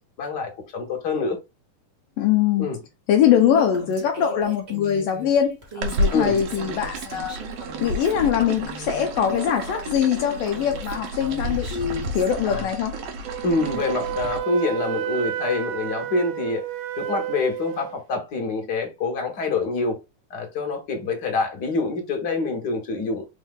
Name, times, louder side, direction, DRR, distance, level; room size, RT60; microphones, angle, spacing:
voice 1, 0.2-1.4 2.6-2.8 6.1-6.4 12.4-12.7 13.4-16.6 17.0-20.0 20.3-23.3, left 3 dB, 45° left, 1.5 m, -26 dB
voice 2, 2.2-2.7 3.1-7.4 7.8-13.0, left 9 dB, 85° left, 1.4 m, -22 dB
Female speech woman speaking, 3.5-12.3, right 2 dB, 35° right, 1.0 m, -39 dB
sound 1, 5.8-14.4, right 1 dB, 70° right, 1.6 m, -31 dB
Wind instrument woodwind instrument, 13.2-18.0, right 14 dB, 85° right, 2.0 m, -31 dB
4.8 x 2.7 x 3.5 m
omnidirectional pair, 3.5 m